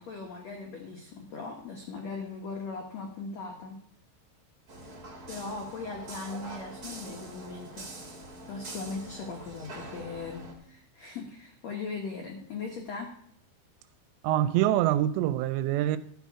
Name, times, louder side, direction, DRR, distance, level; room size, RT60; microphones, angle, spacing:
voice 1, 0.0-3.8 5.3-7.9 8.5-13.1, left 4 dB, 85° left, 1.5 m, -39 dB
sound 1, 4.7-10.5, right 2 dB, 40° right, 1.3 m, -44 dB
voice 2, 14.2-16.0, right 13 dB, 85° right, 2.7 m, -25 dB
12.5 x 8.3 x 4.8 m
omnidirectional pair, 5.2 m